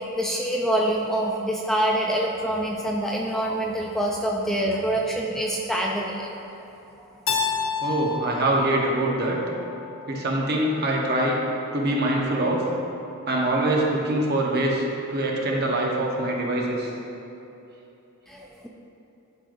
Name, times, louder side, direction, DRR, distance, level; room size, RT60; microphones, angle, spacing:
voice 1, 0.2-6.3 7.6-7.7 18.3-18.7, right 1 dB, ahead, -2 dB, 0.4 m, -25 dB
Keyboard (musical), 7.3-10.1, left 6 dB, 65° left, 0.6 m, -30 dB
voice 2, 7.8-9.4 10.1-11.3 11.7-12.6 13.2-14.8 15.1-16.9, right 1 dB, 45° right, -1 dB, 0.9 m, -24 dB
11.0 x 5.3 x 2.6 m, 3.0 s
head